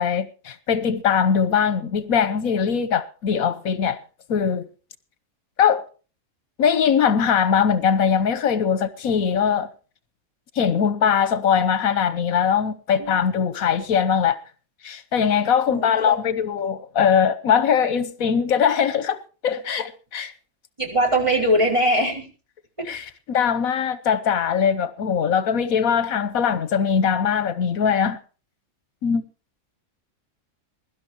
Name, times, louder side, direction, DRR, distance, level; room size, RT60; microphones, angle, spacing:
voice 1, 0.0-4.0 4.3-4.6 5.6-5.8 6.6-9.7 10.5-14.4 14.8-20.3 22.8-28.2 29.0-29.2, left 7 dB, 75° left, 1.3 m, -21 dB
voice 2, 15.7-16.3 20.8-22.3, right 1 dB, 20° right, 5.2 m, -21 dB
22.5 x 12.0 x 2.9 m
omnidirectional pair, 1.5 m